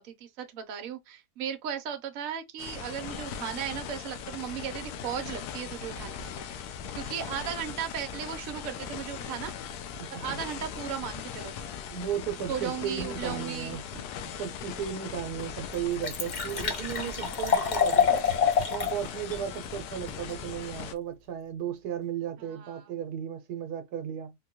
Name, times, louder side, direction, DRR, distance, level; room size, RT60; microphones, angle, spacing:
voice 1, 0.0-6.6 6.9-9.5 10.1-11.5 12.5-13.8 22.4-22.9, right 8 dB, 65° right, 1.0 m, -36 dB
sound 1, 2.6-20.9, left 7 dB, 85° left, 1.2 m, -39 dB
voice 2, 10.0-10.4 11.9-14.1 14.4-18.2 18.7-24.3, right 9 dB, 80° right, 1.2 m, -35 dB
Liquid, 14.9-15.0 15.4-15.5 15.7-19.0 19.3-19.4, left 6 dB, 50° left, 0.5 m, -26 dB
3.7 x 2.2 x 2.8 m
omnidirectional pair, 1.7 m